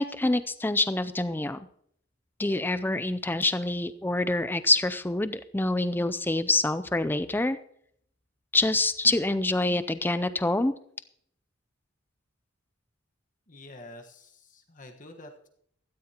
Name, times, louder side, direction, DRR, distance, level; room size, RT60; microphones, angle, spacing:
voice 1, 0.0-1.7 2.4-7.6 8.5-10.7, left 2 dB, 10° left, 12 dB, 0.5 m, -26 dB
voice 2, 13.5-15.5, left 1 dB, 40° left, 4 dB, 1.4 m, -47 dB
16.5 x 13.5 x 2.9 m, 0.69 s
head